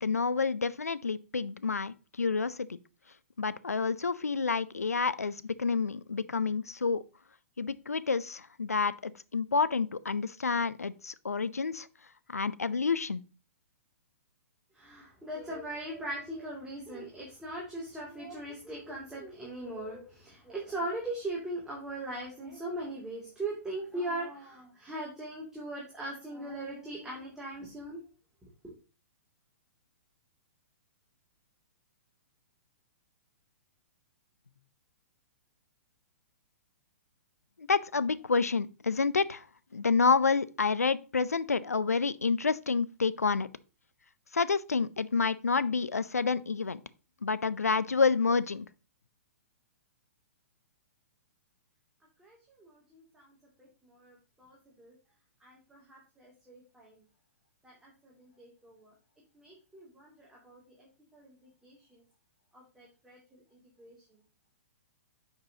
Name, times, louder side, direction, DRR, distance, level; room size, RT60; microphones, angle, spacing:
voice 1, 0.0-2.8 3.4-7.0 7.6-11.9 12.3-13.2 37.6-39.5 39.7-43.5 44.3-46.8 47.2-48.7, left 4 dB, 85° left, 0.5 m, -29 dB
voice 2, 14.8-28.0 28.6-28.7 52.2-53.2 54.0-54.9 55.4-56.9 57.6-58.9 59.4-60.6 61.1-61.3 61.6-61.8 62.5-63.2 63.8-64.0, right 1 dB, 5° right, 2.5 m, -40 dB
8.0 x 6.0 x 2.8 m
figure-of-eight pair, 115°, 8 cm